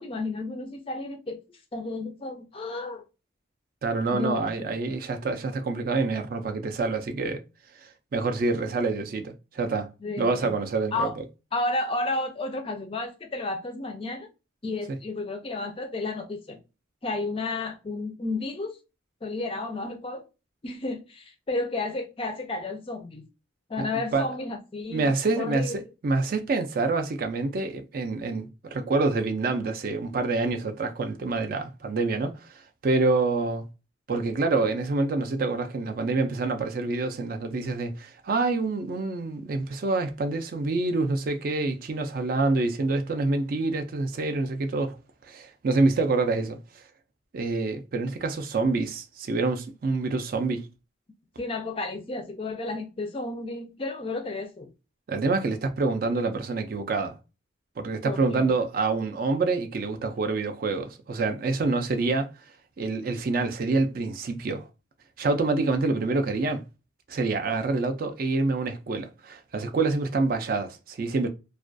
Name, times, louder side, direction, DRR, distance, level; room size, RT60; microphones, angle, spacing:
voice 1, 0.0-1.4 1.7-3.0 4.1-4.5 10.0-10.5 10.9-11.2 11.5-14.3 14.6-16.6 17.0-18.8 19.2-20.2 20.6-23.2 23.7-25.7 51.4-54.7 58.0-58.5, left 2 dB, 30° left, 0.4 m, -32 dB
voice 2, 3.8-7.4 7.8-9.9 10.2-11.2 23.8-23.9 24.1-24.3 24.9-33.7 34.1-45.0 45.3-46.6 47.3-50.7 55.1-57.2 57.8-62.3 62.8-64.7 65.2-66.6 67.1-71.3, right 3 dB, 45° right, 0.3 m, -27 dB
2.4 x 2.2 x 2.4 m
head